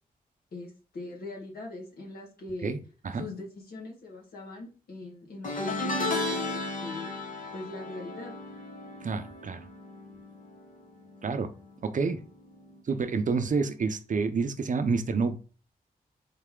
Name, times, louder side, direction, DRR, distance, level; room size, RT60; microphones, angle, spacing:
voice 1, 0.5-2.8 3.1-7.3 7.5-8.3, left 2 dB, 75° left, 0 dB, 1.7 m, -41 dB
sound 1, 5.4-10.8 11.1-11.5 12.7-12.8, left 2 dB, 55° left, 1.1 m, -34 dB
voice 2, 9.0-9.6 11.2-11.5 11.8-12.2 12.9-15.4, right 4 dB, 55° right, 9 dB, 0.6 m, -28 dB
4.0 x 3.3 x 3.7 m, 0.36 s
cardioid pair, 80°, 16 cm